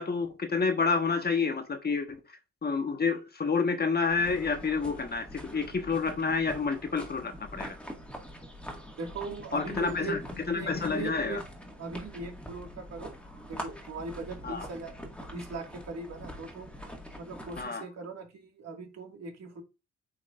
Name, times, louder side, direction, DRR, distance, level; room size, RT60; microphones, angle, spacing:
voice 1, 0.0-2.2 2.6-7.8 9.5-10.2 10.5-11.4 14.4-14.6 17.6-17.8, left 4 dB, 30° left, 1.3 m, -29 dB
sound 1, 4.1-17.6, equal, 5° left, 1.9 m, -44 dB
voice 2, 9.0-10.2 10.5-11.4 11.8-13.2 13.5-14.9 15.3-16.8 17.2-19.6, right 4 dB, 60° right, 2.1 m, -39 dB
8.5 x 4.6 x 2.5 m
cardioid pair, 90°, 30 cm